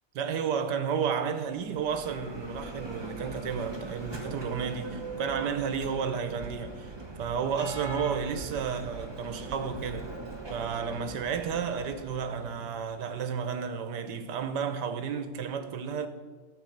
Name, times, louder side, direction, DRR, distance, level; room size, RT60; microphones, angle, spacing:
voice 1, 0.1-6.9 7.2-10.1 10.5-16.1, right 6 dB, 90° right, 1.6 m, -32 dB
Bell, 1.4-13.3, right 3 dB, 15° right, 1.4 m, -41 dB
14.0 x 5.6 x 7.9 m
omnidirectional pair, 1.8 m